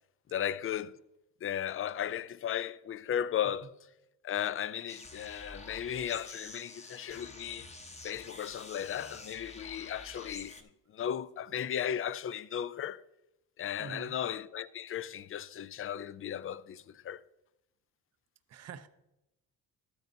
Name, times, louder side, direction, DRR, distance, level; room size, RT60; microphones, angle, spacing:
voice 1, 0.3-0.9 1.4-3.7 4.2-7.7 8.0-13.0 13.6-17.2, left 9 dB, 35° left, 0.4 m, -36 dB
sound 1, 4.9-10.6, left 2 dB, 15° left, 0.9 m, -48 dB
voice 2, 13.8-14.2 18.5-18.9, right 6 dB, 40° right, 0.6 m, -45 dB
12.0 x 9.3 x 2.7 m
cardioid pair, 85°, 40 cm